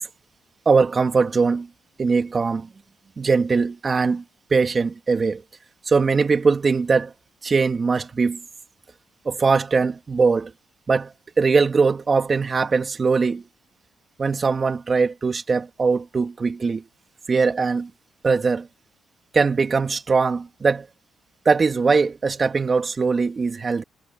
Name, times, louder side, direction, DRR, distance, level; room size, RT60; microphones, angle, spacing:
voice 1, 0.7-1.7 2.0-2.7 3.2-4.2 4.5-5.4 5.8-7.1 7.4-8.4 9.2-10.5 10.9-11.1 11.4-13.4 14.2-16.8 17.3-17.9 18.2-18.7 19.3-20.9 21.4-23.8, right 4 dB, 35° right, 2.9 m, -21 dB
cardioid pair, 90°, 0 cm